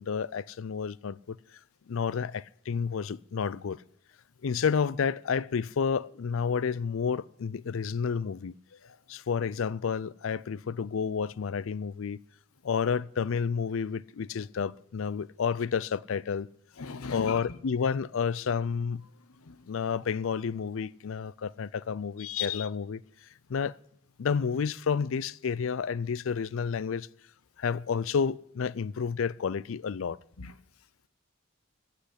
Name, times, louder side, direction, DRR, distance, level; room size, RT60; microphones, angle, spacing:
voice 1, 0.0-1.4 1.9-3.8 4.4-8.5 9.1-12.2 12.6-16.5 17.1-19.0 19.7-23.0 23.5-23.7 24.2-27.1 27.6-30.2, left 6 dB, 65° left, 0.4 m, -30 dB
voice 2, 16.8-17.6 19.4-19.7 22.2-22.7 30.4-30.5, left 8 dB, 85° left, 0.9 m, -37 dB
15.5 x 5.8 x 9.9 m
head